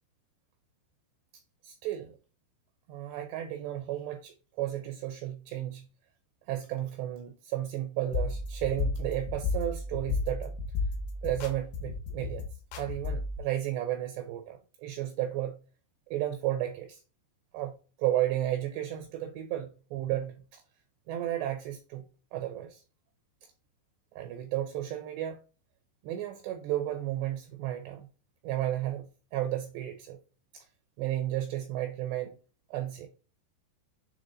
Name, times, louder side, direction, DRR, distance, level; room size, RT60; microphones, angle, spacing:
voice 1, 1.6-2.1 2.9-5.9 6.5-10.6 11.2-12.5 12.8-15.6 16.1-17.0 17.5-20.6 21.1-22.0 22.3-22.8 24.2-25.4 26.0-28.1 28.4-30.2 30.5-30.7 31.0-32.4 32.7-33.1, right 13 dB, 80° right, 2.5 m, -33 dB
sound 1, 8.1-13.4, left 3 dB, 75° left, 3.7 m, -33 dB
8.1 x 3.3 x 3.9 m
omnidirectional pair, 5.7 m